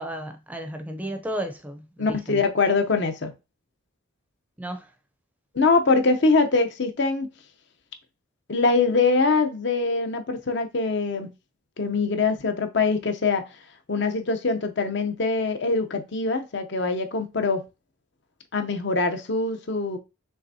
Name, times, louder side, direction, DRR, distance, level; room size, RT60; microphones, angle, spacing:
voice 1, 0.0-2.4 4.6-4.9, right 1 dB, 5° right, 0.5 m, -33 dB
voice 2, 2.0-3.3 5.5-7.3 8.5-11.3 11.8-13.5 13.9-17.7 18.5-20.0, left 3 dB, 55° left, 0.7 m, -23 dB
5.6 x 3.4 x 2.7 m
head